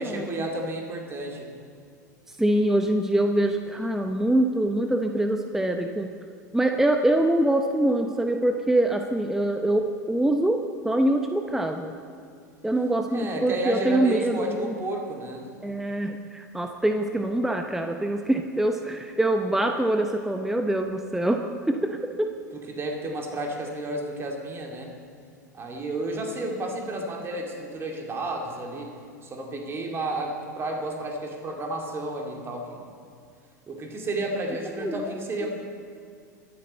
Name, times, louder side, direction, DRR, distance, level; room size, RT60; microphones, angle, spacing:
voice 1, 0.0-1.5 13.1-15.4 22.7-24.9 25.5-28.9 29.2-32.8 33.7-35.5, right 1 dB, 25° right, 1 dB, 2.5 m, -32 dB
voice 2, 2.3-6.1 6.5-11.9 12.6-14.7 15.6-22.3 34.8-35.5, right 1 dB, 5° right, 5 dB, 0.7 m, -24 dB
22.5 x 9.2 x 4.3 m, 2.3 s
figure-of-eight pair, 85°, 10 cm